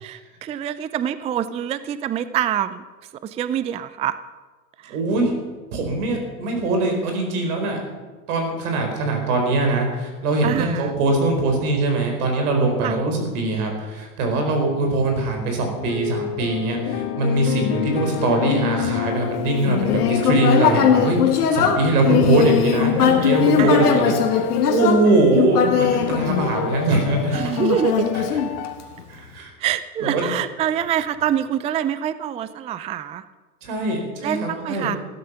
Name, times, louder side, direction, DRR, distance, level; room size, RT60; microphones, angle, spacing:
voice 1, 0.0-2.8 3.2-4.2 4.8-5.0 10.4-10.9 12.8-13.0 23.6-24.0 27.3-28.1 29.6-33.2 34.2-35.0, right 10 dB, 15° right, 14 dB, 0.3 m, -25 dB
voice 2, 4.9-5.3 5.7-7.8 8.3-27.5 28.1-28.2 29.1-29.5 30.0-30.3 33.6-34.9, right 2 dB, 75° right, 3 dB, 4.9 m, -22 dB
sound 1, 15.8-28.8, left 12 dB, 60° left, 1.4 m, -28 dB
Human voice, 19.6-27.0 27.6-29.0, left 7 dB, 85° left, 2.1 m, -20 dB
15.5 x 12.5 x 5.7 m, 1.3 s
hypercardioid pair, 100°, 45 cm